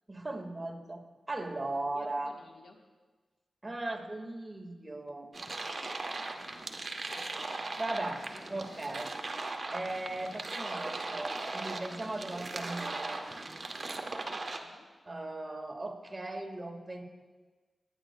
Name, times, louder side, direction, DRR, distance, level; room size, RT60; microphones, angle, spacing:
voice 1, 0.1-1.0 1.3-2.3 3.6-5.3 7.8-8.2 8.5-13.3 15.1-17.0, right 2 dB, 30° right, 3 dB, 1.8 m, -38 dB
voice 2, 1.9-2.8 5.4-6.2 6.9-7.4 8.3-8.4 8.7-8.9 14.5-14.9, left 4 dB, 75° left, 2 dB, 1.3 m, -56 dB
sound 1, 5.3-14.6, right 2 dB, 50° right, 1.0 m, -38 dB
23.0 x 9.4 x 2.3 m, 1.3 s
cardioid pair, 40°, 0 cm